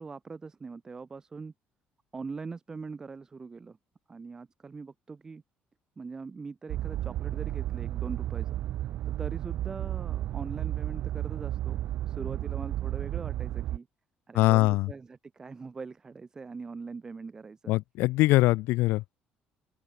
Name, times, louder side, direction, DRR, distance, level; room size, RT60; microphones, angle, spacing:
voice 1, 0.0-1.5 2.1-3.8 4.1-5.4 6.0-8.6 9.0-11.8 12.1-13.9 14.3-17.6, right 4 dB, 15° right, 2.4 m, -42 dB
sound 1, 6.7-13.8, right 13 dB, 50° right, 0.5 m, -33 dB
voice 2, 14.3-14.9 17.7-19.2, left 19 dB, 85° left, 0.7 m, -23 dB
open air
cardioid pair, 180°, 4 cm